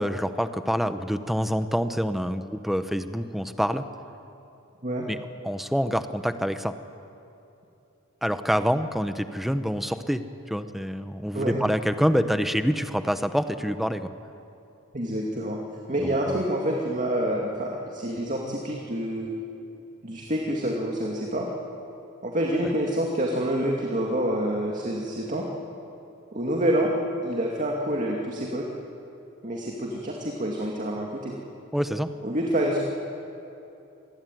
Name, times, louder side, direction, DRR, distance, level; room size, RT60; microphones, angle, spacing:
voice 1, 0.0-3.8 5.1-5.2 5.4-6.8 8.2-14.1 16.0-16.4 31.7-32.1, equal, ahead, 9 dB, 0.9 m, -26 dB
voice 2, 14.9-15.6 15.9-19.3 20.0-21.5 22.2-25.5 26.3-26.9 27.2-28.7 29.4-31.3 32.2-32.8, right 1 dB, 35° right, -1 dB, 2.4 m, -27 dB
26.5 x 21.0 x 9.3 m, 2.8 s
head